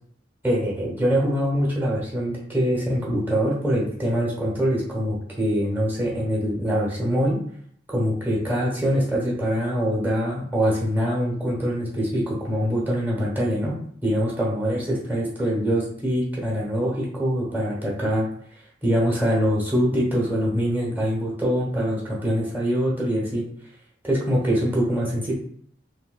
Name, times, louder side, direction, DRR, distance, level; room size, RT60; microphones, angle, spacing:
voice 1, 0.4-7.4 7.9-13.8 14.0-18.3 18.8-23.4 24.0-25.3, equal, 10° right, -3 dB, 1.1 m, -24 dB
3.5 x 2.7 x 2.3 m, 0.62 s
head